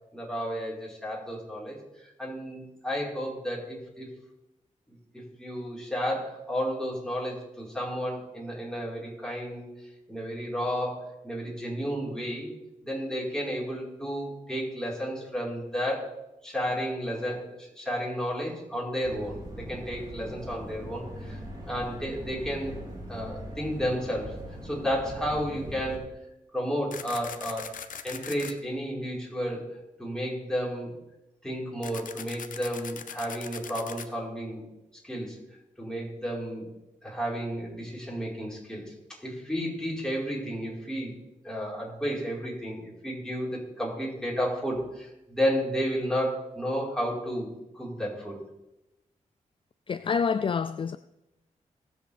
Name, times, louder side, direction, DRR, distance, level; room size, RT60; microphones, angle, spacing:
voice 1, 0.1-4.1 4.9-9.7 10.1-12.5 12.8-16.1 16.4-21.4 21.7-22.8 23.1-24.4 24.6-26.1 26.5-27.7 28.0-29.7 30.0-30.9 31.4-34.6 35.0-35.4 35.8-36.7 37.0-38.9 39.2-41.1 41.4-47.5 47.7-48.4, equal, 5° left, 4.3 m, -32 dB
sound 1, 19.0-26.0, equal, 30° right, 3.2 m, -41 dB
sound 2, 26.9-28.5 31.8-34.1, left 7 dB, 85° left, 0.7 m, -40 dB
voice 2, 49.9-51.0, left 6 dB, 40° left, 0.3 m, -27 dB
19.0 x 7.7 x 3.4 m
wide cardioid pair, 90°, 13 cm